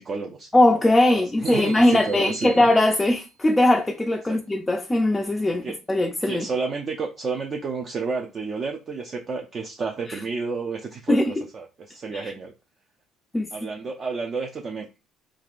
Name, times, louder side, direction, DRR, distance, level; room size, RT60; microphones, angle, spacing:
voice 1, 0.0-0.5 1.1-2.7 4.3-4.4 5.6-5.7 6.3-12.5 13.5-15.0, right 4 dB, 40° right, 0.5 m, -31 dB
voice 2, 0.5-6.5 10.1-10.2 11.1-11.4 12.1-12.3 13.3-13.7, left 1 dB, 15° left, 0.4 m, -20 dB
sound 1, 1.5-3.4, right 4 dB, 75° right, 1.1 m, -43 dB
3.3 x 2.4 x 2.5 m
supercardioid pair, 90°, 0 cm